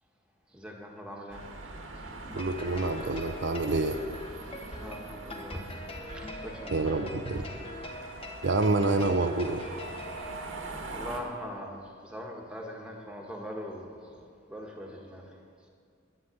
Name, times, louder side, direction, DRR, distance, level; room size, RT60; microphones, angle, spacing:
voice 1, 0.5-1.4 2.3-2.4 4.7-5.8 6.1-7.5 10.9-15.3, equal, 5° right, 1 dB, 1.5 m, -41 dB
sound 1, 1.3-11.2, right 2 dB, 85° right, 1.8 m, -43 dB
sound 2, 2.3-10.8, left 2 dB, 30° left, 1.2 m, -44 dB
voice 2, 2.3-4.0 6.7-7.4 8.4-9.6, right 3 dB, 60° right, 7 dB, 0.6 m, -27 dB
11.5 x 9.3 x 8.9 m, 2.3 s
head